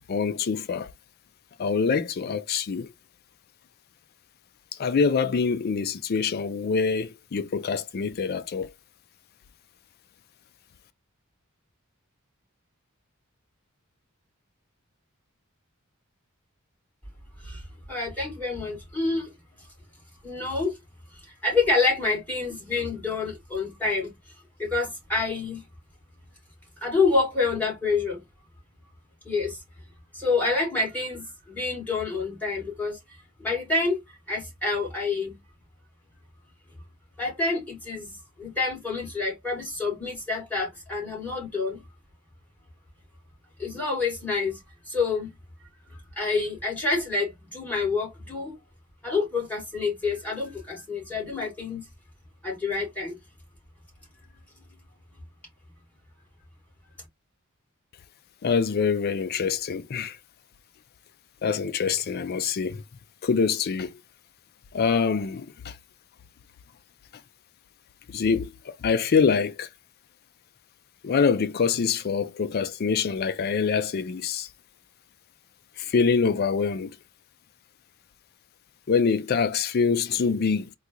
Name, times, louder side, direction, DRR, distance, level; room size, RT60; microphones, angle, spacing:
voice 1, 0.1-0.9 1.6-2.9 4.8-8.7 58.4-60.2 61.4-62.8 63.2-64.0 64.7-65.8 68.1-69.7 71.0-74.5 75.8-76.9 78.9-80.7, left 5 dB, 45° left, 0.4 m, -25 dB
voice 2, 17.9-19.3 20.2-20.7 21.4-24.1 24.6-25.6 26.8-28.2 29.2-29.6 30.1-33.0 33.4-35.4 37.2-41.8 43.6-44.6 44.9-45.3 46.2-48.5 49.0-51.8 52.4-53.2, left 3 dB, 10° left, 2.3 m, -27 dB
3.7 x 2.3 x 2.8 m
head